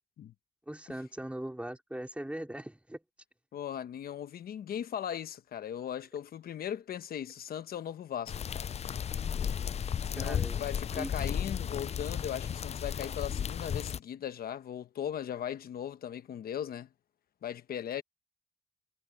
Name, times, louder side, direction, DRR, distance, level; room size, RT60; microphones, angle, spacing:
voice 1, 0.7-3.0 10.2-10.6 10.9-11.3, right 1 dB, 10° right, 4.0 m, -40 dB
voice 2, 3.5-8.7 10.1-16.9 17.4-18.0, left 9 dB, 75° left, 1.1 m, -38 dB
sound 1, 8.3-14.0, left 8 dB, 45° left, 0.4 m, -34 dB
cardioid pair, 80°, 16 cm